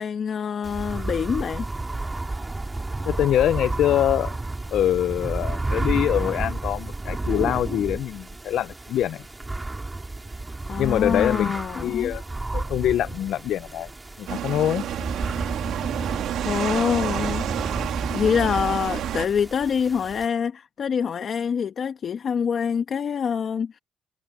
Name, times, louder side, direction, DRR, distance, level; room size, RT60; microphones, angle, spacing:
voice 1, 0.0-1.7 10.7-12.1 16.4-17.5 18.1-23.8, left 7 dB, 55° left, 1.2 m, -25 dB
sound 1, 0.6-20.3, right 2 dB, 20° right, 3.7 m, -32 dB
voice 2, 3.0-4.3 4.7-9.2 10.8-12.2 12.5-13.9 14.2-14.9, left 11 dB, 80° left, 0.4 m, -24 dB
sound 2, 14.3-19.3, right 11 dB, 80° right, 2.0 m, -29 dB
cardioid pair, 90°, 0 cm